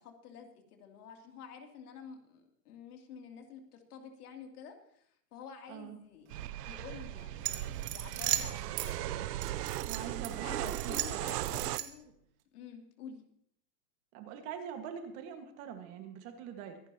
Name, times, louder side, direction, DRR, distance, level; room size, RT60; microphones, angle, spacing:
voice 1, 0.0-5.1 5.3-9.1 10.4-12.0 12.5-13.2, left 7 dB, 70° left, 3 dB, 3.0 m, -50 dB
sound 1, 6.3-11.8, right 14 dB, 80° right, 0.7 m, -37 dB
sound 2, 7.4-8.9 9.4-10.3 10.6-12.1, right 13 dB, 60° right, 1.8 m, -36 dB
voice 2, 9.9-11.5 14.1-16.8, right 8 dB, 30° right, 6 dB, 1.7 m, -44 dB
24.0 x 11.5 x 2.9 m, 0.66 s
supercardioid pair, 165°, 48 cm